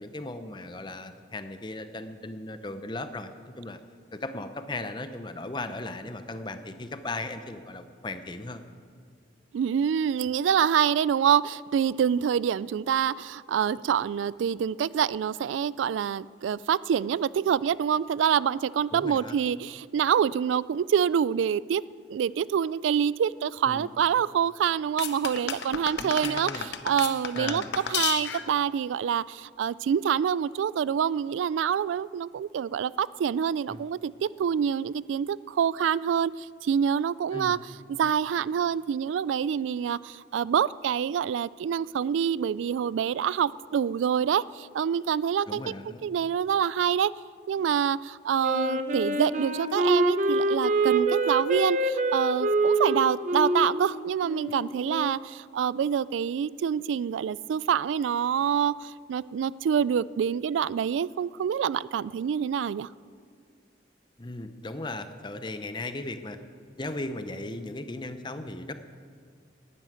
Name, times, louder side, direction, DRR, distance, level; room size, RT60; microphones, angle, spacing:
voice 1, 0.0-3.8 4.1-8.6 18.9-19.4 23.7-23.9 26.0-26.7 27.3-27.7 33.7-33.8 37.3-37.6 45.5-46.0 64.2-66.4 66.8-68.7, left 2 dB, 25° left, 9 dB, 0.7 m, -37 dB
voice 2, 9.5-21.8 22.1-27.6 27.9-37.6 37.9-45.6 46.0-47.1 47.5-62.9, right 8 dB, 90° right, 20 dB, 0.3 m, -26 dB
sound 1, 25.0-28.6, left 8 dB, 70° left, 0.8 m, -32 dB
Wind instrument woodwind instrument, 48.4-55.2, right 2 dB, 40° right, 0.8 m, -26 dB
12.0 x 9.5 x 9.2 m, 2.2 s
head